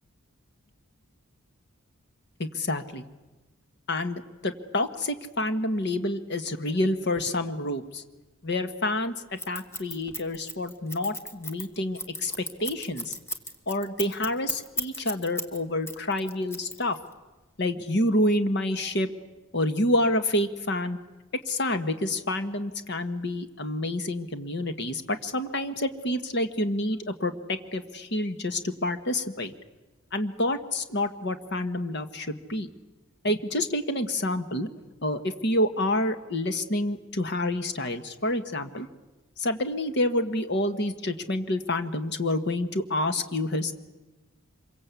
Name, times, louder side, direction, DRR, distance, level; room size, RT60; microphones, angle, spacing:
voice 1, 2.4-3.0 3.9-8.0 8.4-13.2 13.7-17.0 17.6-19.1 19.5-21.0 21.5-29.5 30.1-32.7 33.2-34.7 35.0-38.9 39.4-43.7, left 1 dB, 55° left, 9 dB, 1.6 m, -28 dB
Scissors, 9.4-15.6 15.9-17.1, left 1 dB, 10° left, 1.6 m, -34 dB
26.0 x 23.5 x 8.4 m, 1.1 s
head